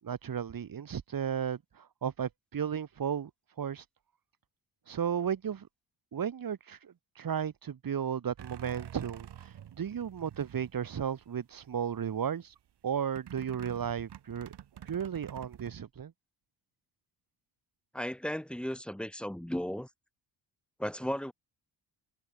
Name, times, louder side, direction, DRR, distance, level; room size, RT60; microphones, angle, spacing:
voice 1, 0.0-3.3 3.6-3.8 4.9-5.7 6.1-12.5 12.8-14.5 14.9-16.1, right 8 dB, 50° right, 7.5 m, -34 dB
sound 1, 8.4-11.3 11.7-12.3 13.1-15.7, right 10 dB, 65° right, 3.9 m, -48 dB
voice 2, 17.9-19.9 20.8-21.3, equal, ahead, 2.9 m, -35 dB
wide cardioid pair, 170°, 43 cm